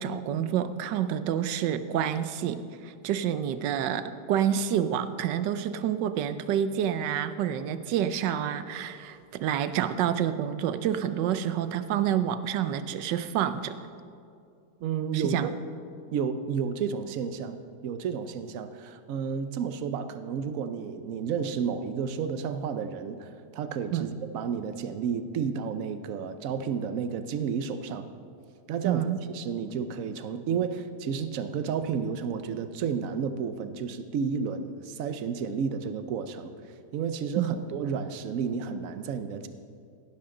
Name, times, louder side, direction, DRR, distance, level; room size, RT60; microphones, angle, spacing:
voice 1, 0.0-13.8 15.1-15.5 23.9-24.1 28.8-29.2 37.4-37.6, right 9 dB, 85° right, 12 dB, 1.3 m, -28 dB
voice 2, 14.8-15.6 16.1-28.0 28.7-36.5 36.9-39.5, right 6 dB, 60° right, 10 dB, 0.9 m, -31 dB
16.0 x 11.5 x 3.8 m, 2.4 s
omnidirectional pair, 1.9 m